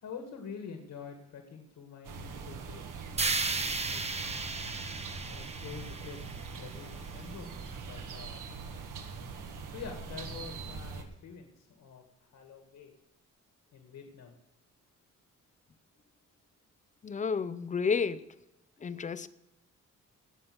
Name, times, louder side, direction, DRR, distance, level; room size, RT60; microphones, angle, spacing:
voice 1, 0.0-3.0 3.5-4.7 5.3-8.4 9.7-12.9 13.7-14.4, left 6 dB, 70° left, 2.1 m, -47 dB
sound 1, 2.0-11.0, right 5 dB, 75° right, 1.9 m, -42 dB
sound 2, 3.2-7.2, right 3 dB, 20° right, 0.9 m, -35 dB
voice 2, 17.0-18.3 18.8-19.3, left 5 dB, 25° left, 0.5 m, -31 dB
17.5 x 5.8 x 7.9 m
wide cardioid pair, 170°, 32 cm